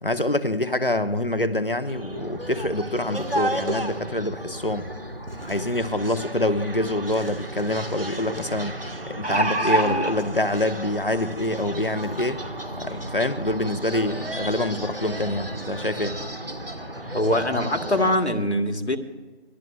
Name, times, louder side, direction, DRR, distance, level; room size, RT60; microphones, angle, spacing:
voice 1, 0.0-4.9 5.5-8.8 9.1-12.4 12.8-16.1, left 1 dB, 50° left, 12 dB, 0.9 m, -26 dB
sound 1, 1.8-18.2, right 1 dB, 55° right, 1.6 m, -34 dB
sound 2, 6.8-6.9 7.2-7.3 8.9-10.1 11.1-11.2 11.6-11.7, right 1 dB, 80° right, 3.6 m, -23 dB
voice 2, 17.1-19.0, left 1 dB, 70° left, 6 dB, 1.7 m, -23 dB
25.0 x 19.0 x 2.4 m, 1.3 s
figure-of-eight pair, 180°, 34 cm